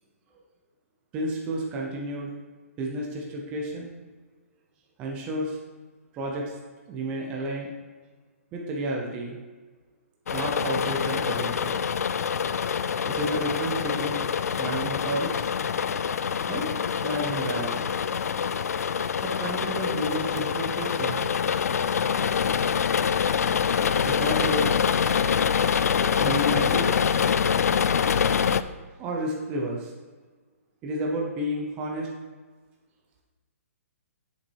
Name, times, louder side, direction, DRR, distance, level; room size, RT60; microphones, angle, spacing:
voice 1, 1.1-2.3 2.8-3.9 5.0-5.6 6.1-6.6 6.9-7.7 8.5-9.4 10.3-11.8 13.1-14.2 14.6-15.4 16.5-16.8 17.0-17.8 19.2-21.2 24.0-24.7 26.1-26.9 29.0-29.9 30.8-32.1, right 1 dB, 10° right, -1 dB, 0.6 m, -31 dB
sound 1, 10.3-28.6, left 7 dB, 80° left, 0.4 m, -25 dB
7.2 x 5.8 x 4.6 m, 1.4 s
hypercardioid pair, 175°, 8 cm